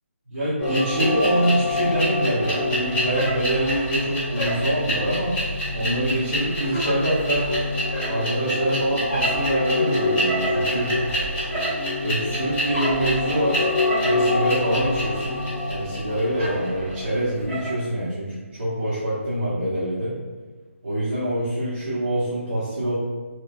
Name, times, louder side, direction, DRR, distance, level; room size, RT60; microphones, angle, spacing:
voice 1, 0.3-7.5 8.1-10.9 12.0-13.7 14.0-15.4 15.6-20.1 20.8-22.9, right 1 dB, 45° right, -12 dB, 1.0 m, -25 dB
sound 1, 0.6-17.8, left 1 dB, 10° left, 0.7 m, -25 dB
3.0 x 2.2 x 2.5 m, 1.4 s
figure-of-eight pair, 170°, 7 cm